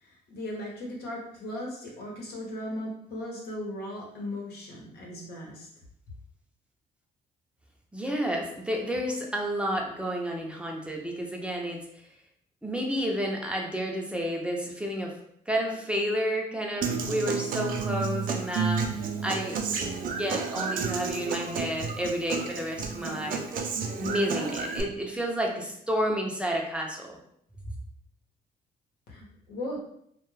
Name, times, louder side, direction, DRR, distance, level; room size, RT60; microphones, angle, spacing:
voice 1, 0.0-5.7 29.1-29.8, left 1 dB, 80° left, -2 dB, 0.9 m, -37 dB
voice 2, 7.9-11.8 12.6-15.1 15.5-18.9 19.2-19.6 20.1-27.2, equal, 5° right, -1 dB, 0.5 m, -30 dB
Human voice / Acoustic guitar, 16.8-24.8, right 5 dB, 60° right, 0.4 m, -31 dB
2.3 x 2.2 x 3.1 m, 0.70 s
cardioid pair, 85°, 16 cm